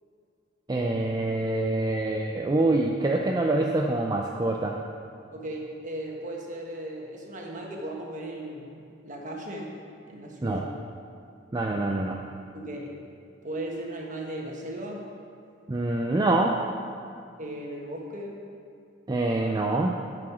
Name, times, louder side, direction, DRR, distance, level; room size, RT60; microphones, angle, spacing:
voice 1, 0.7-4.8 10.4-10.6 11.5-12.2 15.7-16.6 19.1-20.0, right 2 dB, 20° right, 0 dB, 0.4 m, -25 dB
voice 2, 5.3-9.7 10.1-10.7 12.5-12.9 13.4-15.0 17.4-18.4, right 1 dB, 40° right, -1 dB, 1.3 m, -37 dB
11.0 x 5.0 x 5.9 m, 2.4 s
head